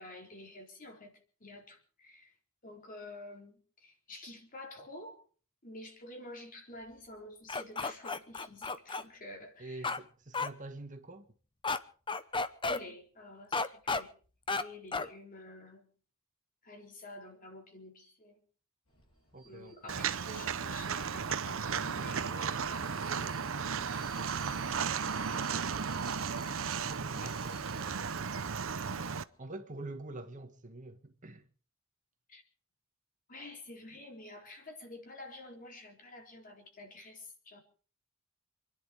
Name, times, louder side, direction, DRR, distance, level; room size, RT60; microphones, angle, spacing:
voice 1, 0.0-2.3 2.6-5.2 5.6-9.9 12.7-14.1 14.5-15.9 16.6-18.4 19.4-24.0 24.7-25.4 27.1-27.4 29.0-29.2 32.3-32.4 33.3-37.6, left 1 dB, 40° left, 3.9 m, -50 dB
sound 1, 7.5-9.0 9.8-10.0 10.3-10.5 11.6-11.8 12.1-12.8 13.5-14.0 14.5-14.6 14.9-15.1, left 3 dB, 25° left, 0.9 m, -32 dB
voice 2, 9.6-11.3 19.3-19.9 25.3-25.7 26.8-28.5 29.4-31.5, right 2 dB, 35° right, 1.6 m, -46 dB
Vehicle, 18.9-28.2, equal, 80° left, 7.7 m, -54 dB
Walk footsteps, 19.9-29.2, right 6 dB, 65° right, 0.8 m, -35 dB
28.0 x 10.5 x 4.8 m
head